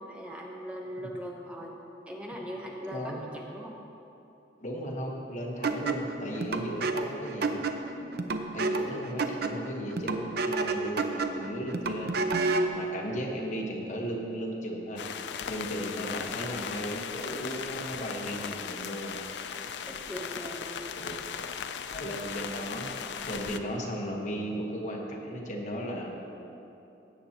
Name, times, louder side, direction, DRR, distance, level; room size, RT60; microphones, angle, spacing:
voice 1, 0.0-1.7 2.1-3.8 19.9-21.1, equal, 5° right, -2 dB, 0.9 m, -40 dB
voice 2, 4.6-7.6 8.5-12.4 12.7-15.0 15.4-19.1 20.9-21.2 21.9-26.3, equal, 45° left, -1 dB, 1.2 m, -36 dB
sound 1, 5.6-12.8, right 3 dB, 60° right, 0.6 m, -30 dB
sound 2, 15.0-23.6, left 7 dB, 70° left, 0.4 m, -37 dB
17.0 x 7.9 x 2.9 m, 2.9 s
head